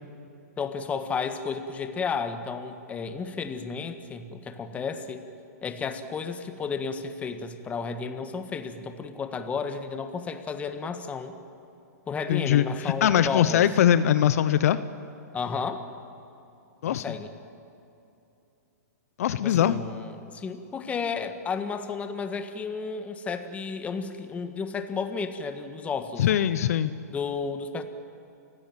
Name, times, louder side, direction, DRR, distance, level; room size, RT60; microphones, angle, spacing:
voice 1, 0.6-5.2 5.6-11.3 12.1-13.6 15.3-15.8 16.8-17.3 19.4-26.3 27.1-27.8, left 5 dB, 15° left, 8 dB, 1.6 m, -32 dB
voice 2, 12.3-14.8 16.8-17.0 19.2-19.8 26.2-26.9, left 10 dB, 60° left, 13 dB, 0.9 m, -22 dB
29.5 x 16.5 x 9.1 m, 2.8 s
hypercardioid pair, 140°, 9 cm